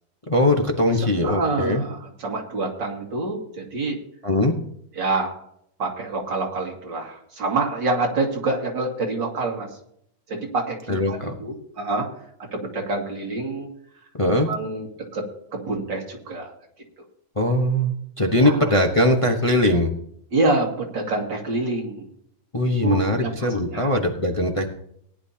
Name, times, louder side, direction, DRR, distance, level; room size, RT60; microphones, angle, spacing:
voice 1, 0.3-1.8 4.2-4.5 10.9-11.3 14.2-14.5 17.4-19.9 22.5-24.7, left 1 dB, 20° left, 2 dB, 0.9 m, -21 dB
voice 2, 1.2-4.0 4.9-5.4 5.8-9.7 10.3-12.1 12.5-13.7 14.5-14.9 15.1-15.3 15.5-16.5 18.4-18.7 20.3-22.1 22.8-23.9, right 3 dB, 75° right, 0 dB, 3.0 m, -26 dB
19.0 x 10.5 x 2.8 m, 0.70 s
omnidirectional pair, 2.0 m